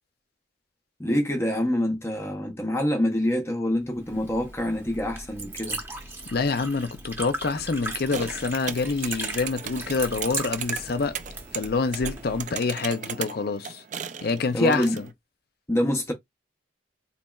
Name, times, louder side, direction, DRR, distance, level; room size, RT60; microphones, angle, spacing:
voice 1, 1.0-5.8 14.5-15.0 15.7-16.1, left 1 dB, 15° left, 0.7 m, -26 dB
Liquid, 3.9-12.5, right 2 dB, 10° right, 0.9 m, -37 dB
voice 2, 6.3-11.2 11.5-13.8 14.2-15.1, left 4 dB, 50° left, 0.5 m, -26 dB
sound 1, 8.1-15.1, right 8 dB, 40° right, 0.4 m, -37 dB
4.2 x 2.8 x 2.3 m
head